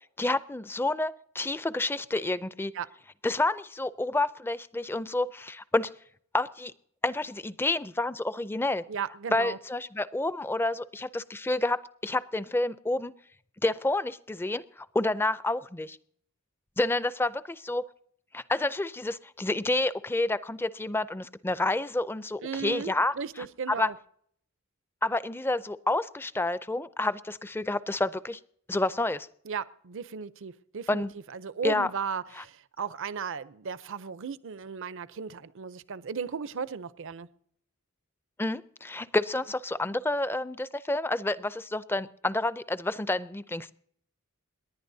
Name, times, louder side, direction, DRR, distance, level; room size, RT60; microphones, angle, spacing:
voice 1, 0.2-2.7 3.2-5.9 6.3-6.7 7.0-8.8 9.3-13.1 13.6-16.0 16.8-17.8 18.3-23.2 23.7-23.9 25.0-28.4 28.7-29.3 30.9-31.1 31.6-31.9 32.4-32.5 38.4-43.7, left 2 dB, 10° left, 15 dB, 0.4 m, -29 dB
voice 2, 8.9-9.6 22.4-23.9 29.5-37.3, right 6 dB, 60° right, 15 dB, 0.6 m, -36 dB
28.5 x 11.0 x 2.7 m, 0.65 s
head